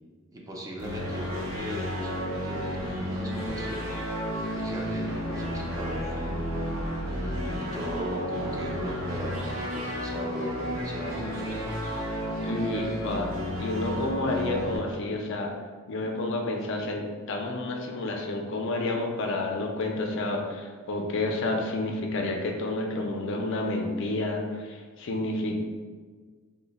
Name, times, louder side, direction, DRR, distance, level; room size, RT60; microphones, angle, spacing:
voice 1, 0.3-3.9 4.5-6.4 7.1-11.5, equal, 15° right, -2 dB, 0.4 m, -37 dB
sound 1, 0.8-14.8, equal, 70° right, 0.7 m, -32 dB
voice 2, 12.4-13.3 13.6-15.5 15.9-25.6, left 2 dB, 60° left, 2 dB, 0.4 m, -30 dB
3.0 x 2.1 x 3.9 m, 1.5 s
head